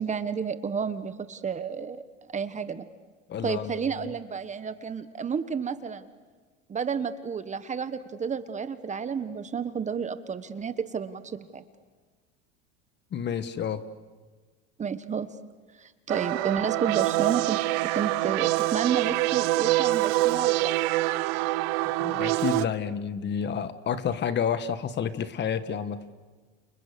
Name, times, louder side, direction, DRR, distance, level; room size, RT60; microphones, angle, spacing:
voice 1, 0.0-2.0 2.3-2.8 3.4-6.1 6.7-11.6 14.8-15.3 15.8-17.6 17.8-20.7, right 6 dB, 25° right, 12 dB, 1.3 m, -31 dB
voice 2, 3.3-3.9 13.1-13.8 22.0-26.0, left 7 dB, 35° left, 13 dB, 1.4 m, -30 dB
sound 1, 16.1-22.6, right 19 dB, 70° right, 0.8 m, -25 dB
29.5 x 29.5 x 6.9 m, 1.4 s
supercardioid pair, 125°, 31 cm